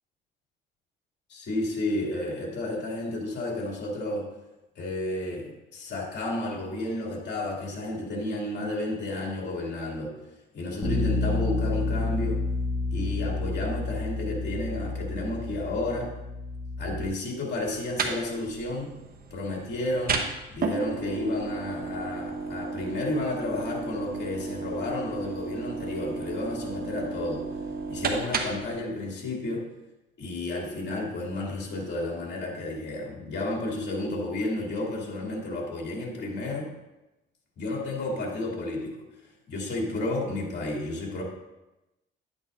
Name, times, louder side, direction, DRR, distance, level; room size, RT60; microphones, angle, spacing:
voice 1, 1.3-4.3 4.7-10.1 10.5-12.4 12.9-16.1 16.8-18.9 19.3-20.2 20.5-27.5 27.9-29.7 30.2-36.7 37.6-39.0 39.5-41.2, left 2 dB, 60° left, -2 dB, 2.7 m, -32 dB
Bass guitar, 10.8-17.1, left 3 dB, 10° left, 1.5 m, -30 dB
sound 1, 17.6-28.7, right 4 dB, 50° right, 1.0 m, -33 dB
10.5 x 8.5 x 2.6 m, 0.98 s
cardioid pair, 90°, 20 cm